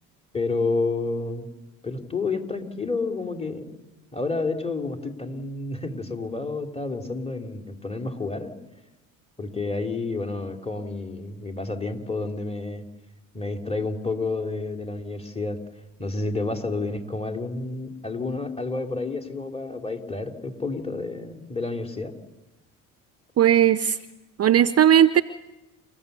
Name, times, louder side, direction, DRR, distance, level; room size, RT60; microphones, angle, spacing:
voice 1, 0.3-1.5 1.8-3.8 4.1-8.5 9.4-12.8 13.3-15.6 16.0-22.1, left 3 dB, 15° left, 4 dB, 3.2 m, -30 dB
voice 2, 23.4-24.0 24.4-25.2, right 10 dB, 35° right, 15 dB, 0.7 m, -17 dB
29.0 x 15.5 x 6.9 m, 1.0 s
hypercardioid pair, 60°, 41 cm